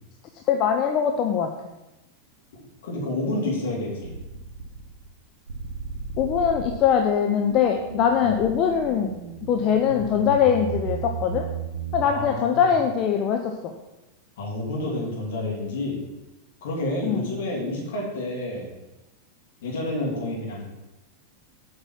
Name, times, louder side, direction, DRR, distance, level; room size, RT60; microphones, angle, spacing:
voice 1, 0.5-1.5 6.2-9.1 9.4-11.4 11.9-13.7 17.0-17.3, left 8 dB, 35° left, 3 dB, 0.7 m, -22 dB
voice 2, 2.8-4.2 8.2-8.5 12.0-12.6 14.4-16.0 16.6-18.7 19.6-20.6, left 1 dB, 55° left, -3 dB, 2.9 m, -29 dB
sound 1, 4.0-5.1 5.5-12.1, right 5 dB, 65° right, 0.9 m, -35 dB
8.2 x 5.2 x 5.9 m, 1.0 s
figure-of-eight pair, 90°, 0 cm